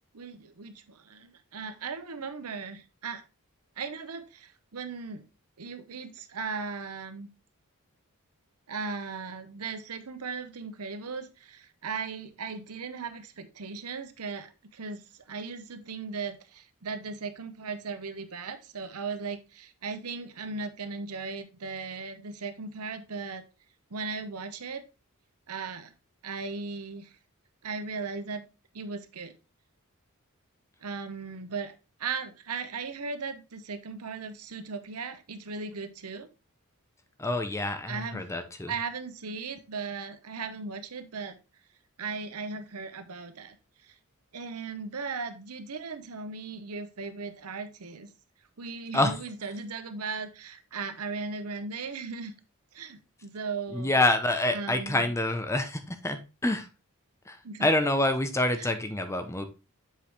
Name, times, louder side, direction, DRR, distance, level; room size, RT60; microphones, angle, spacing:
voice 1, 0.1-3.2 3.8-5.2 5.6-7.3 8.7-23.4 23.9-24.8 25.5-25.9 26.2-27.2 27.6-28.5 28.7-29.3 30.8-31.7 32.0-36.3 37.9-38.2 38.7-41.4 42.0-43.6 43.8-43.9 44.3-48.1 48.6-52.3 52.7-54.0 54.5-55.1 57.4-57.7 58.6-58.7, right 4 dB, 80° right, 9 dB, 0.9 m, -37 dB
voice 2, 37.2-38.7 48.9-49.1 53.7-56.7 57.3-59.5, left 1 dB, 15° left, 8 dB, 0.7 m, -27 dB
7.4 x 4.8 x 3.4 m, 0.29 s
head